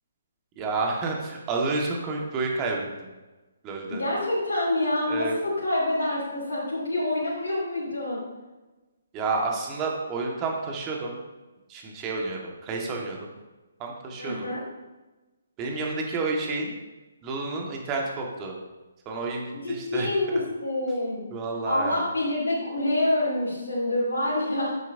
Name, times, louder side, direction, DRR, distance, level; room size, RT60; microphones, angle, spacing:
voice 1, 0.6-2.9 3.6-4.0 5.1-5.3 9.1-11.2 11.7-13.3 13.8-14.5 15.6-16.7 17.2-18.6 19.0-20.1 21.3-22.1, right 3 dB, 25° right, 0 dB, 1.6 m, -30 dB
voice 2, 3.9-8.2 14.2-14.6 19.5-21.2 21.6-24.8, left 1 dB, 75° left, -7 dB, 2.6 m, -27 dB
9.5 x 7.3 x 2.7 m, 1.1 s
figure-of-eight pair, 145°, 0 cm